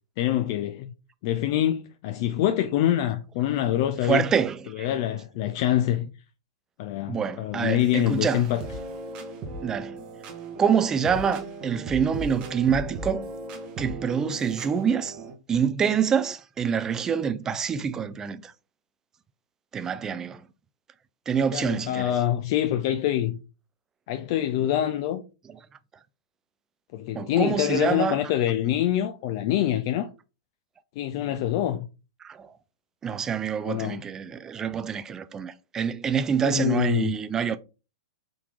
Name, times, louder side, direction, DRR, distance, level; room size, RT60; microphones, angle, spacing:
voice 1, 0.2-0.9 1.2-4.3 4.7-6.1 6.8-8.7 21.5-23.4 24.1-25.2 26.9-30.1 31.0-31.9 33.6-34.0 36.4-37.1, left 12 dB, 50° left, 0.4 m, -25 dB
voice 2, 4.1-4.9 7.1-8.4 9.6-10.0 10.6-13.3 13.8-15.2 15.5-18.5 19.7-20.4 21.3-22.1 27.1-28.2 32.2-32.5 33.0-37.6, right 7 dB, 20° right, 0.4 m, -26 dB
sound 1, 7.8-15.4, right 2 dB, 35° right, 0.9 m, -37 dB
3.8 x 2.9 x 3.6 m
hypercardioid pair, 110°, 3 cm